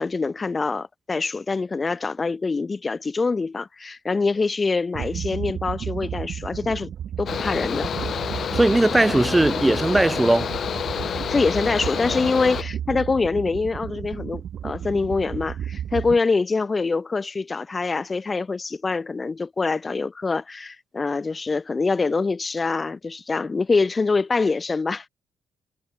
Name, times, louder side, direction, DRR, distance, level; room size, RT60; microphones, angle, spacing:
voice 1, 0.0-6.9 7.2-7.9 11.3-25.1, left 4 dB, 30° left, 1.3 m, -24 dB
sound 1, 4.9-16.2, right 9 dB, 65° right, 3.0 m, -33 dB
Mechanical fan, 7.3-12.6, left 8 dB, 55° left, 0.7 m, -28 dB
voice 2, 8.5-10.6, right 2 dB, 10° right, 1.2 m, -19 dB
cardioid pair, 90°, 0 cm